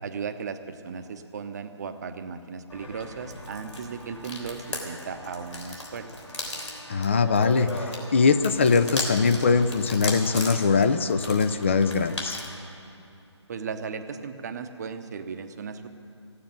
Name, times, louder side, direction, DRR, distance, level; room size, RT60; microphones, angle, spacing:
voice 1, 0.0-6.1 13.5-15.9, right 6 dB, 35° right, 8 dB, 0.8 m, -36 dB
sound 1, 2.7-12.6, left 1 dB, 80° left, 3.4 m, -37 dB
voice 2, 6.9-12.4, left 5 dB, 25° left, 10 dB, 0.4 m, -22 dB
15.0 x 9.6 x 9.0 m, 2.7 s
figure-of-eight pair, 155°, 15 cm